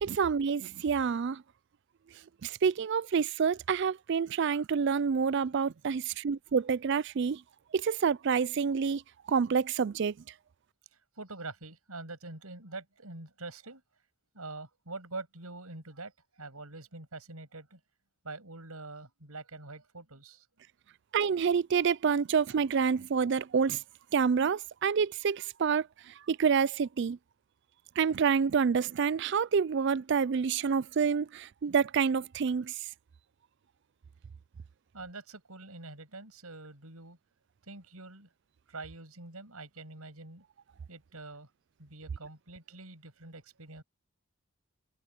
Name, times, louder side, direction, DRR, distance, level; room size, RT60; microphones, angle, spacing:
voice 1, 0.0-1.4 2.4-7.4 7.7-9.0 9.3-10.1 21.1-23.8 24.1-27.2 28.0-32.8, right 6 dB, 50° right, 0.4 m, -28 dB
voice 2, 11.2-13.8 14.3-16.1 16.4-17.8 18.2-20.5 23.2-23.4 34.9-37.2 37.7-38.3 38.7-40.4 40.9-41.5 41.8-43.8, right 3 dB, 85° right, 6.9 m, -45 dB
head